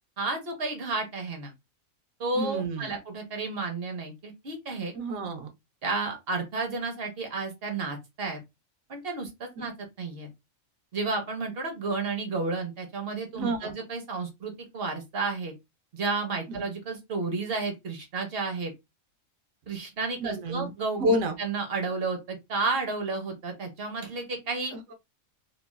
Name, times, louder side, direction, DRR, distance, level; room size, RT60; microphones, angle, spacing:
voice 1, 0.2-1.5 2.2-4.9 5.8-8.4 8.9-9.7 10.0-10.3 10.9-15.5 15.9-18.7 19.7-21.1 21.4-24.8, right 3 dB, 55° right, 0.9 m, -32 dB
voice 2, 2.4-2.9 4.9-5.5 13.4-13.7 16.5-16.6 20.2-20.7 21.0-21.4 24.7-24.9, equal, 80° right, 1.1 m, -29 dB
3.0 x 2.4 x 2.2 m
omnidirectional pair, 1.4 m